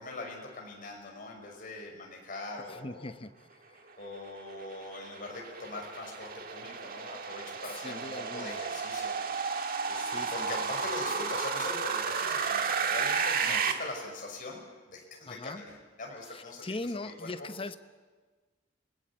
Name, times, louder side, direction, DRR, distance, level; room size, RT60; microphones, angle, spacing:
voice 1, 0.0-3.1 4.0-9.2 9.5-14.6 14.9-17.3, left 2 dB, 45° left, 1 dB, 5.9 m, -42 dB
voice 2, 2.7-3.3 3.7-3.8 7.8-8.6 10.0-10.7 13.5-13.6 15.3-15.6 16.3-17.8, left 2 dB, 30° left, 11 dB, 0.9 m, -40 dB
sound 1, 4.2-13.7, right 5 dB, 50° right, 1.7 m, -33 dB
28.5 x 19.5 x 8.8 m, 1.4 s
head